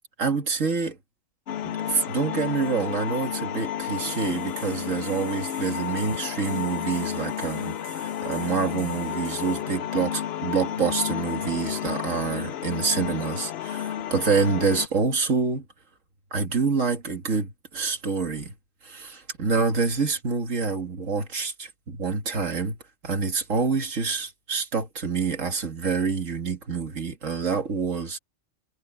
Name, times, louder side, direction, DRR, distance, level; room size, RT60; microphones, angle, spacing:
voice 1, 0.2-1.0 1.6-15.7 16.3-18.5 18.8-22.8 23.0-28.2, right 5 dB, 85° right, 2.2 m, -27 dB
sound 1, 1.5-14.9, left 10 dB, 65° left, 0.8 m, -32 dB
sound 2, 4.1-9.6, right 2 dB, 60° right, 4.5 m, -47 dB
omnidirectional pair, 1.3 m